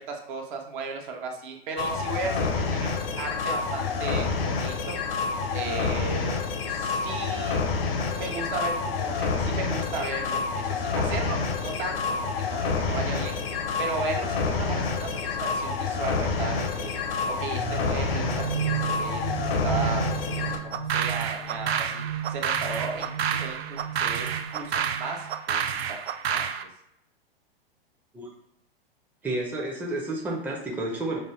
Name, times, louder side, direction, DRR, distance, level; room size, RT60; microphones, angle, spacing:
voice 1, 0.0-5.0 5.5-6.4 6.7-7.6 8.1-12.0 12.4-16.9 17.3-22.0 22.3-26.0 26.3-26.5, right 4 dB, 55° right, 2 dB, 1.0 m, -35 dB
sound 1, 1.8-20.6, left 4 dB, 70° left, 0.8 m, -28 dB
sound 2, 17.6-25.3, right 8 dB, 30° right, 1.0 m, -34 dB
sound 3, 20.7-26.6, right 8 dB, 80° right, 0.5 m, -29 dB
voice 2, 29.2-31.2, right 2 dB, 5° right, -2 dB, 0.6 m, -30 dB
5.1 x 2.0 x 3.2 m, 0.79 s
hypercardioid pair, 115°, 31 cm